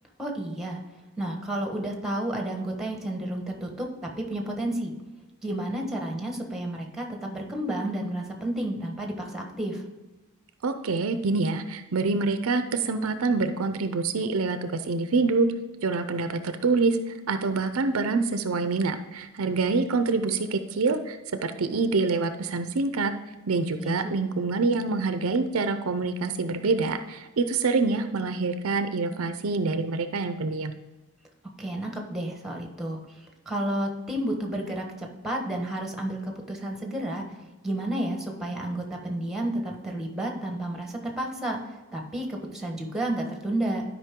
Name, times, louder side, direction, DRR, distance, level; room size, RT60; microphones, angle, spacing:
voice 1, 0.2-0.8 1.2-3.9 4.2-4.9 5.4-9.8 23.8-24.1 31.6-37.2 37.6-43.8, right 1 dB, ahead, 2 dB, 1.3 m, -31 dB
voice 2, 10.6-15.5 15.8-17.0 17.3-21.2 21.4-23.1 23.5-30.7, right 3 dB, 70° right, 9 dB, 0.6 m, -26 dB
12.0 x 5.2 x 3.7 m, 1.1 s
head